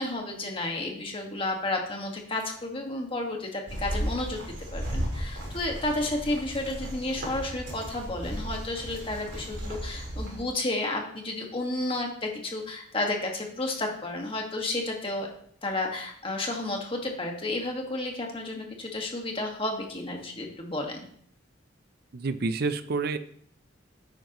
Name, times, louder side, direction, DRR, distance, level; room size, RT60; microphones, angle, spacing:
voice 1, 0.0-15.3 15.6-21.1, left 2 dB, 30° left, 1 dB, 1.7 m, -32 dB
sound 1, 3.7-10.4, equal, 70° right, 3.9 m, -35 dB
voice 2, 22.1-23.2, right 4 dB, 55° right, 11 dB, 0.5 m, -28 dB
10.5 x 8.8 x 3.0 m, 0.62 s
head